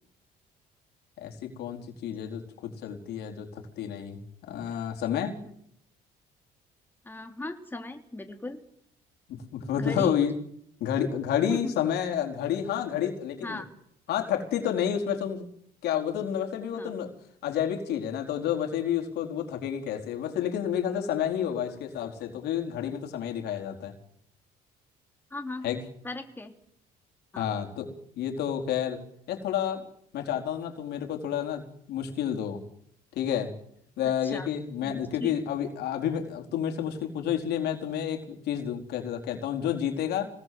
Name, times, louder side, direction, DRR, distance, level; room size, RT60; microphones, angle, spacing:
voice 1, 1.2-5.4 9.3-10.3 10.8-13.6 14.1-15.5 15.8-17.1 17.4-23.9 25.6-25.8 27.4-29.8 30.1-32.6 33.2-33.5 34.0-40.3, left 9 dB, 75° left, 3 dB, 4.4 m, -30 dB
voice 2, 7.0-8.6 9.7-10.1 11.5-11.8 13.4-13.7 16.7-16.9 25.3-25.7 26.0-26.5 27.3-27.5 34.0-34.5 34.8-35.3, left 2 dB, 10° left, 5 dB, 3.4 m, -37 dB
25.5 x 19.0 x 7.8 m, 0.71 s
cardioid pair, 110°, 17 cm